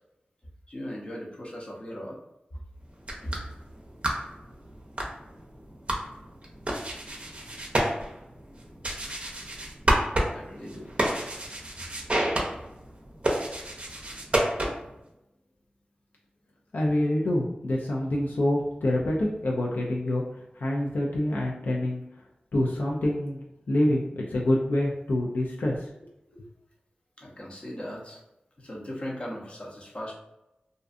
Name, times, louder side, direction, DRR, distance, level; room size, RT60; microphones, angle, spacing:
voice 1, 0.7-2.2 3.2-3.4 10.3-10.9 27.2-28.2 28.6-30.1, equal, 35° left, -2 dB, 0.7 m, -38 dB
sound 1, 2.9-15.0, right 1 dB, 40° right, 0.5 m, -30 dB
voice 2, 16.7-20.2 20.6-22.0 22.5-23.4 23.7-26.5, left 1 dB, 75° left, -3 dB, 0.4 m, -26 dB
2.5 x 2.3 x 2.4 m, 0.91 s
wide cardioid pair, 65°, 3 cm